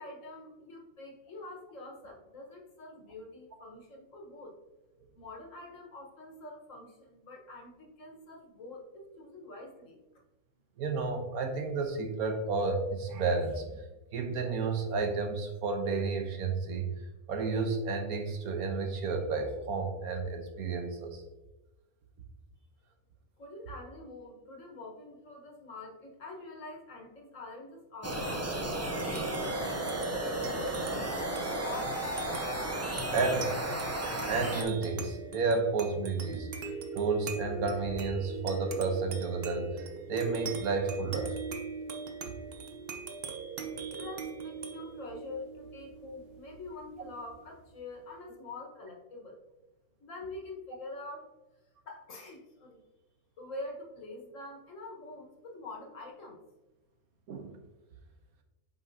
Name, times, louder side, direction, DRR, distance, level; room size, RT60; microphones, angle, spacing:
voice 1, 0.0-4.5 5.1-10.0 23.4-28.4 29.0-32.0 43.9-49.4 50.0-51.3 51.8-52.8 53.4-56.4, left 2 dB, 60° left, 0 dB, 1.6 m, -46 dB
voice 2, 10.8-13.8 14.1-16.9 17.3-21.2 33.1-33.5 34.3-39.7 40.1-41.4 57.3-57.6, right 4 dB, 90° right, 5 dB, 1.5 m, -31 dB
sound 1, 28.0-34.6, right 1 dB, 25° right, 0.3 m, -33 dB
sound 2, 28.8-47.6, right 5 dB, 50° right, 0.9 m, -42 dB
8.3 x 5.4 x 2.7 m, 1.1 s
omnidirectional pair, 1.5 m